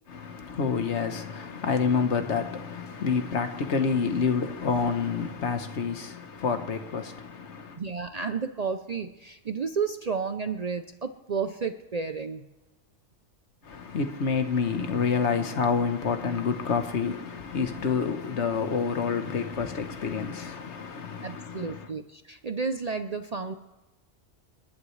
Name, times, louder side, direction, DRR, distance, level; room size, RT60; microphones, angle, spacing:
voice 1, 0.1-7.8 13.6-21.8, left 5 dB, 70° left, 1.4 m, -28 dB
voice 2, 7.8-12.5 21.2-23.5, right 5 dB, 45° right, 0.5 m, -32 dB
28.5 x 11.0 x 3.2 m
omnidirectional pair, 1.2 m